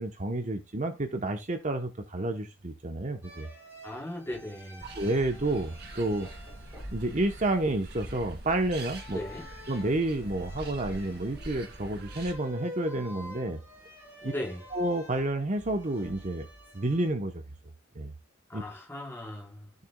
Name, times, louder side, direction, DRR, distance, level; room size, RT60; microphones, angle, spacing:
voice 1, 0.0-3.5 4.9-6.3 6.9-9.2 9.7-13.6 14.2-14.3 14.7-16.5 16.7-17.4 18.0-18.1 18.5-18.6, right 2 dB, 40° right, 0.9 m, -30 dB
sound 1, 3.2-17.1, equal, 10° right, 5.4 m, -48 dB
voice 2, 3.8-4.8 9.1-9.5 14.2-14.6 18.5-19.7, left 1 dB, 10° left, 4.5 m, -38 dB
sound 2, 4.8-12.3, right 1 dB, 55° right, 2.5 m, -43 dB
14.0 x 6.7 x 2.3 m
head